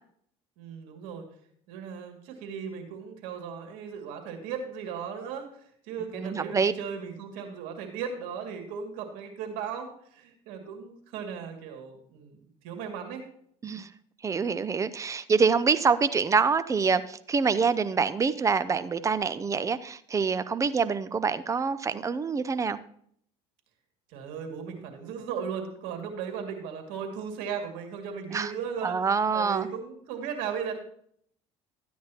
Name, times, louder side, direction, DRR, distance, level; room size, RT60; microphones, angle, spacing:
voice 1, 0.6-1.2 1.7-5.5 5.9-13.2 24.1-28.9 29.3-30.7, right 7 dB, 80° right, 4 dB, 2.3 m, -36 dB
voice 2, 6.1-6.7 13.6-13.9 14.2-22.8 28.3-28.5 28.8-29.7, right 5 dB, 20° right, 14 dB, 0.6 m, -26 dB
13.0 x 9.3 x 2.9 m, 0.64 s
supercardioid pair, 105°, 14 cm